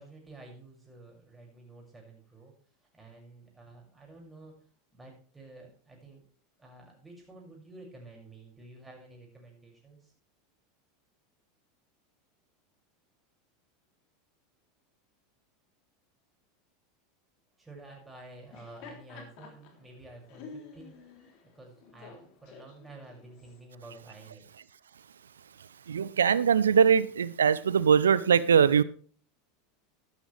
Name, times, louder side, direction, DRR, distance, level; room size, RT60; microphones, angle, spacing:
voice 1, 0.0-2.5 2.9-4.5 4.9-6.2 6.6-10.1 17.6-21.3 21.5-24.4, right 2 dB, 10° right, 6.3 m, -51 dB
Laughter, 18.3-23.6, left 5 dB, 55° left, 3.5 m, -50 dB
voice 2, 25.9-28.8, right 7 dB, 80° right, 0.6 m, -22 dB
12.5 x 12.5 x 3.4 m
hypercardioid pair, 85°, 0 cm